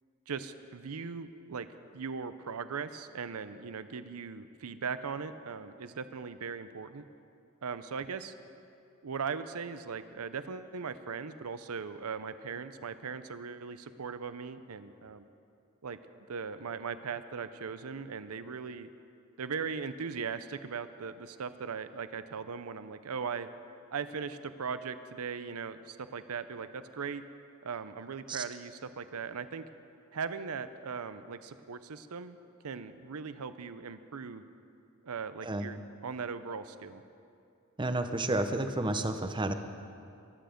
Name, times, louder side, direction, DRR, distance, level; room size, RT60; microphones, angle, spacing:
voice 1, 0.3-1.7 1.9-7.0 7.6-8.3 9.0-15.3 15.8-16.0 16.3-18.9 19.4-23.5 23.9-27.2 27.6-29.6 30.1-32.4 32.6-34.4 35.0-35.8 36.0-37.0, right 5 dB, 80° right, 12 dB, 0.6 m, -39 dB
voice 2, 37.8-39.5, right 2 dB, 20° right, 8 dB, 0.7 m, -31 dB
22.5 x 9.2 x 5.1 m, 2.5 s
head